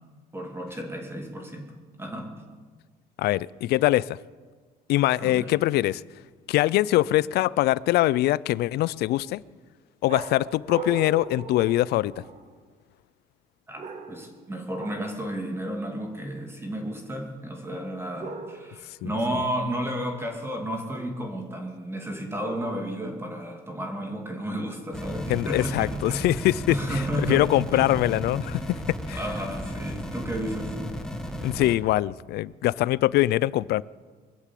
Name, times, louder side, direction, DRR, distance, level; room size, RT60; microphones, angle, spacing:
voice 1, 0.3-2.4 5.2-5.6 13.7-13.8 14.1-26.3 26.7-27.5 27.7-27.9 29.1-30.8, right 1 dB, 15° right, 2.5 m, -32 dB
voice 2, 3.2-4.2 4.9-6.0 6.5-9.4 10.0-12.1 19.0-19.2 25.3-27.0 27.3-29.2 31.4-33.8, left 16 dB, 70° left, 0.4 m, -23 dB
sound 1, 10.1-12.6 13.7-14.4 14.8-15.2 18.2-18.9 22.4-23.1, right 4 dB, 45° right, 1.7 m, -38 dB
sound 2, 24.9-31.7, equal, 5° left, 1.6 m, -34 dB
22.0 x 7.4 x 8.3 m
cardioid pair, 110°, 17 cm